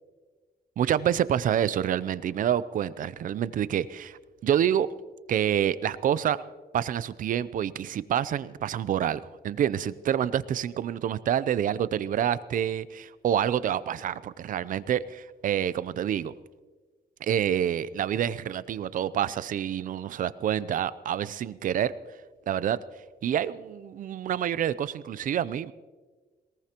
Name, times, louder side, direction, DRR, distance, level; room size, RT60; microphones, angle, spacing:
voice 1, 0.8-4.9 5.3-6.5 6.7-16.3 17.2-21.9 22.5-22.8 23.2-25.7, right 10 dB, 55° right, 17 dB, 0.5 m, -27 dB
21.5 x 19.5 x 2.9 m, 1.4 s
wide cardioid pair, 180°, 17 cm